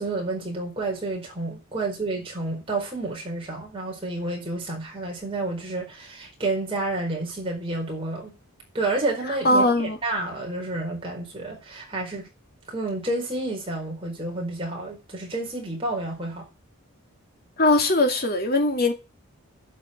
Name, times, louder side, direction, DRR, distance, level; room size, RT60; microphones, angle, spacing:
voice 1, 0.0-8.3 8.7-12.3 12.7-16.5, right 2 dB, 25° right, 4.6 m, -30 dB
voice 2, 9.4-10.0 17.6-18.9, left 2 dB, 45° left, 2.2 m, -20 dB
10.5 x 5.8 x 8.0 m
head